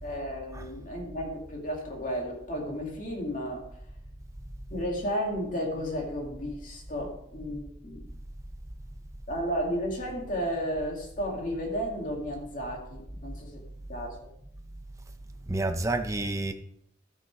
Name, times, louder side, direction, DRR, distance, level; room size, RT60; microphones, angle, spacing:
voice 1, 0.0-3.6 4.7-8.0 9.3-13.6 13.9-14.2, equal, 45° left, -1 dB, 2.3 m, -33 dB
voice 2, 15.4-16.5, right 2 dB, 15° right, 5 dB, 0.7 m, -30 dB
13.0 x 6.3 x 4.8 m, 0.72 s
head